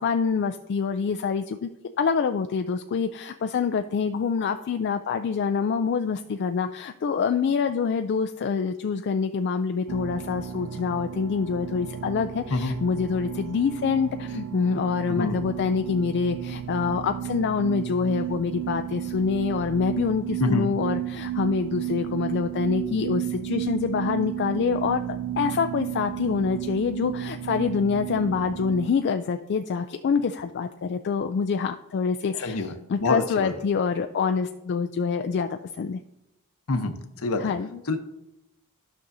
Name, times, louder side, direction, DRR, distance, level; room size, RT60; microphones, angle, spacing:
voice 1, 0.0-1.7 2.0-25.0 25.4-35.5 35.8-36.0 37.4-37.8, left 5 dB, 50° left, 7 dB, 0.3 m, -26 dB
sound 1, 9.9-28.9, right 11 dB, 75° right, 0.4 m, -33 dB
voice 2, 15.1-15.4 20.4-20.7 32.4-32.7 33.0-33.5 36.7-36.9 37.2-37.5 37.9-38.0, left 2 dB, 65° left, 8 dB, 0.8 m, -25 dB
11.5 x 6.1 x 2.7 m, 0.87 s
head